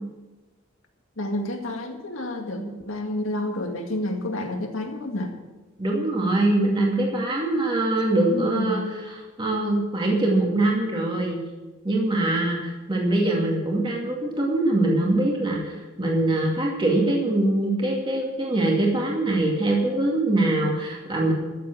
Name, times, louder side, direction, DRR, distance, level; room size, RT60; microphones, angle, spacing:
voice 1, 1.2-5.3 8.3-8.9, left 1 dB, 85° left, 3 dB, 2.0 m, -29 dB
voice 2, 5.8-11.4 11.8-21.3, right 2 dB, 25° right, -2 dB, 2.3 m, -23 dB
13.5 x 7.7 x 7.5 m, 1.2 s
head